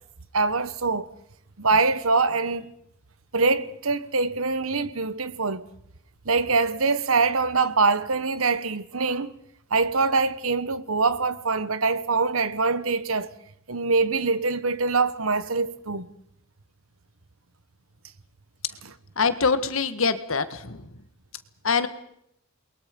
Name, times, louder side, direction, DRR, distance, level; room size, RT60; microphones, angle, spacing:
voice 1, 0.3-1.1 1.6-2.7 3.3-5.7 6.2-9.3 9.7-13.3 13.7-16.1 18.8-18.9, right 4 dB, 80° right, 1.4 m, -24 dB
voice 2, 19.2-20.8 21.6-21.9, left 5 dB, 70° left, 1.7 m, -24 dB
29.0 x 22.0 x 5.4 m
head